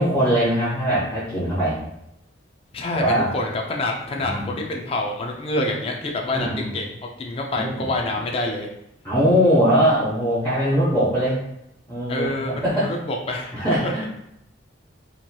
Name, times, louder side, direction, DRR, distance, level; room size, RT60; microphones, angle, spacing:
voice 1, 0.0-1.8 2.9-3.3 4.2-4.6 6.3-6.7 7.5-7.9 9.0-11.4 11.9-12.3 12.6-12.9 13.5-14.0, equal, 10° left, -10 dB, 0.8 m, -21 dB
voice 2, 2.7-8.7 12.1-13.9, left 2 dB, 30° left, 1 dB, 0.3 m, -27 dB
3.0 x 2.8 x 2.2 m, 0.80 s
head